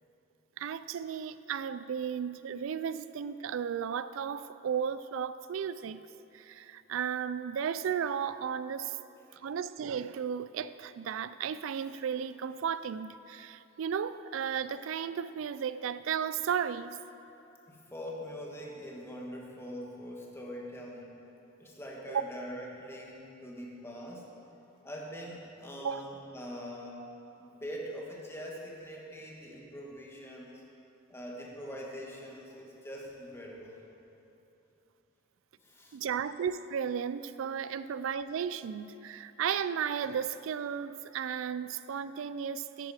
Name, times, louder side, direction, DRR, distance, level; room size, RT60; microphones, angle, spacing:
voice 1, 0.6-6.0 6.3-9.0 9.4-17.0 22.1-22.2 25.8-26.0 35.9-42.9, right 7 dB, 80° right, 14 dB, 0.3 m, -34 dB
voice 2, 17.7-21.2 21.6-24.3 24.8-27.0 27.4-30.6 31.1-33.8 35.6-36.0 37.6-37.7, equal, 15° left, -2 dB, 1.3 m, -43 dB
10.0 x 9.3 x 4.9 m, 2.9 s
head